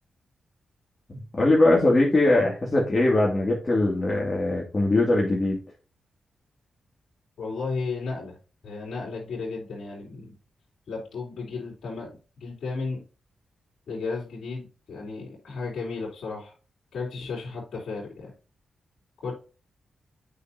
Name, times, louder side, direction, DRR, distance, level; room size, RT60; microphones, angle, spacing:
voice 1, 1.1-5.6, left 2 dB, 35° left, -4 dB, 2.5 m, -21 dB
voice 2, 7.4-8.4 8.6-10.3 10.9-13.0 13.9-16.5 16.9-18.3 19.2-19.3, left 4 dB, 70° left, -5 dB, 3.4 m, -34 dB
8.3 x 5.6 x 2.8 m, 0.35 s
supercardioid pair, 50°, 0 cm